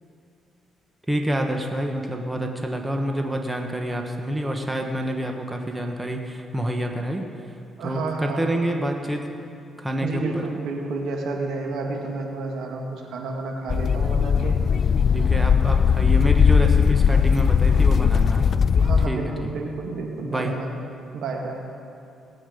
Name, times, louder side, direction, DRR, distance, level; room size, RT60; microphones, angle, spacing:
voice 1, 1.1-7.3 7.8-9.2 9.8-10.4 15.1-18.5 19.1-19.5 20.2-20.5, right 1 dB, 15° right, 3 dB, 1.2 m, -27 dB
voice 2, 7.8-8.5 10.0-14.6 18.8-20.7 21.1-21.6, right 3 dB, 75° right, 1 dB, 2.0 m, -30 dB
sound 1, 13.7-19.1, left 6 dB, 50° left, 0.4 m, -18 dB
19.0 x 8.7 x 5.2 m, 2.5 s
cardioid pair, 90°, 0 cm